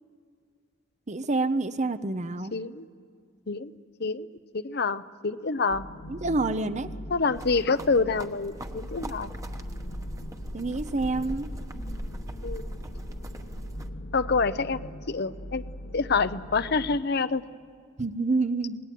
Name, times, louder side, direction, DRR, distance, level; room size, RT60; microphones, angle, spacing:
voice 1, 1.1-2.5 6.1-6.9 10.5-11.5 18.0-18.8, right 3 dB, 35° right, 12 dB, 0.8 m, -27 dB
voice 2, 2.5-2.9 3.5-3.7 4.0-4.3 4.5-5.9 7.1-9.3 12.4-12.6 14.1-15.6 15.9-17.4, left 4 dB, 55° left, 12 dB, 0.8 m, -27 dB
sound 1, 5.7-17.0, equal, 70° left, 1.7 m, -41 dB
sound 2, 7.3-13.9, equal, 15° right, 1.1 m, -39 dB
26.5 x 20.0 x 9.3 m, 2.1 s
head